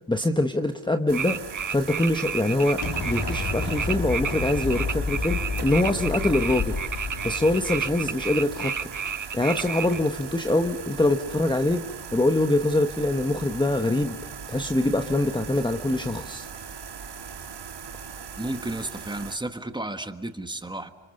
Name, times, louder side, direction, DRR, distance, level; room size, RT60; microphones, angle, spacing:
voice 1, 0.1-1.4 1.7-6.7 7.2-8.7 9.3-14.2 14.5-16.5, left 2 dB, 10° left, 6 dB, 1.0 m, -24 dB
sound 1, 1.1-10.0, right 6 dB, 40° right, 1.1 m, -31 dB
sound 2, 1.1-19.4, right 7 dB, 60° right, 1.9 m, -40 dB
Explosion, 2.8-8.8, left 3 dB, 55° left, 3.9 m, -31 dB
voice 2, 18.4-20.9, right 1 dB, 10° right, 8 dB, 1.5 m, -32 dB
29.5 x 26.5 x 6.5 m, 1.2 s
wide cardioid pair, 135°, 47 cm